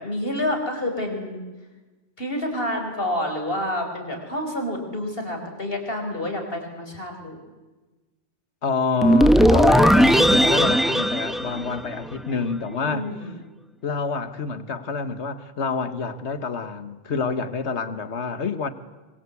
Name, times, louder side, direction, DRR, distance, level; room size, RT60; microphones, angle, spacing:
voice 1, 0.0-1.4 2.2-7.4 12.8-13.3, left 1 dB, 55° left, 5.2 m, -28 dB
voice 2, 8.6-13.1 13.8-18.7, left 4 dB, 75° left, 1.7 m, -27 dB
sound 1, 9.0-12.3, equal, ahead, 0.9 m, -17 dB
25.5 x 24.0 x 8.4 m
omnidirectional pair, 1.2 m